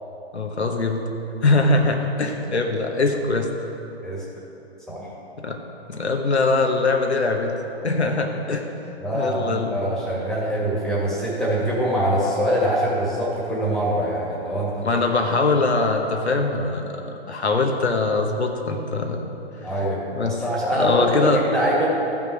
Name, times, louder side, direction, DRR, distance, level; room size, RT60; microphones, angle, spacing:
voice 1, 0.3-1.0 1.4-3.5 5.4-5.6 5.9-7.6 7.8-8.6 9.1-9.7 14.8-19.2 20.1-20.4 20.7-21.4, left 3 dB, 90° left, 3 dB, 1.1 m, -22 dB
voice 2, 9.0-15.0 19.6-21.9, equal, ahead, -6 dB, 1.9 m, -24 dB
14.0 x 5.8 x 4.7 m, 2.9 s
figure-of-eight pair, 125°, 32 cm